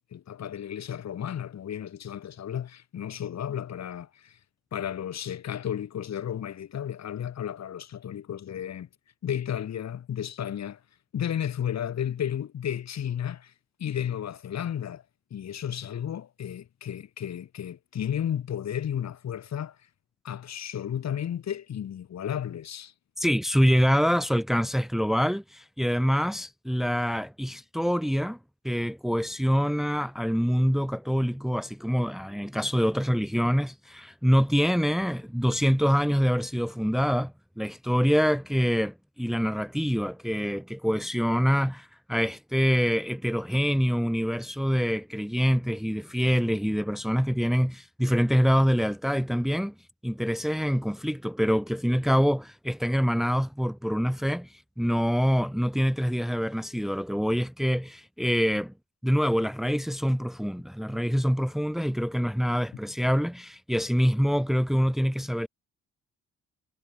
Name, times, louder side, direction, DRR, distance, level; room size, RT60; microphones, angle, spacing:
voice 1, 0.1-4.4 4.7-8.9 9.2-10.8 11.1-13.5 13.8-15.0 15.3-19.8 20.2-22.9, left 9 dB, 60° left, 4.7 m, -33 dB
voice 2, 23.2-28.4 28.6-49.7 50.0-54.5 54.8-58.7 59.0-65.5, equal, ahead, 1.8 m, -25 dB
cardioid pair, 90°, 30 cm